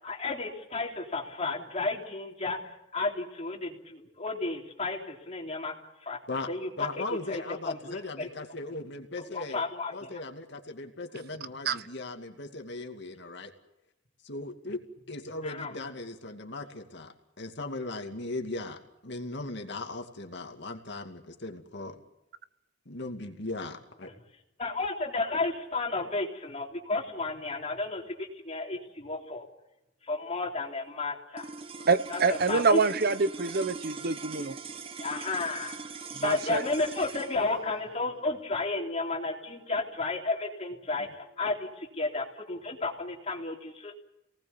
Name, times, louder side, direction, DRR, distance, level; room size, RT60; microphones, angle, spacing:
voice 1, 0.0-5.8 6.0-6.2 6.5-8.3 9.2-10.1 15.4-15.8 24.6-29.4 30.1-31.5 32.1-32.2 32.5-32.8 35.0-35.7 36.2-43.9, left 3 dB, 35° left, 0 dB, 3.6 m, -32 dB
voice 2, 6.8-9.6 9.9-13.5 14.2-14.8 15.1-22.0 22.9-24.1 41.0-41.1, left 2 dB, 65° left, 5 dB, 2.4 m, -38 dB
sound 1, 31.3-41.8, right 4 dB, 30° right, 1.2 m, -42 dB
voice 3, 31.9-34.6 36.2-36.6, right 4 dB, 55° right, 14 dB, 0.9 m, -26 dB
27.0 x 19.0 x 7.2 m, 0.89 s
head